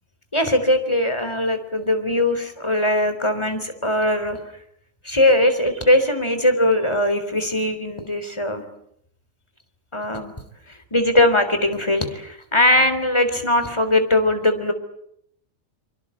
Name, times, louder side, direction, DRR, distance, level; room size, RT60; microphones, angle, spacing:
voice 1, 0.3-4.4 5.0-8.6 9.9-10.3 10.7-14.7, left 1 dB, 20° left, 9 dB, 3.6 m, -20 dB
25.5 x 24.5 x 8.5 m, 0.73 s
omnidirectional pair, 1.4 m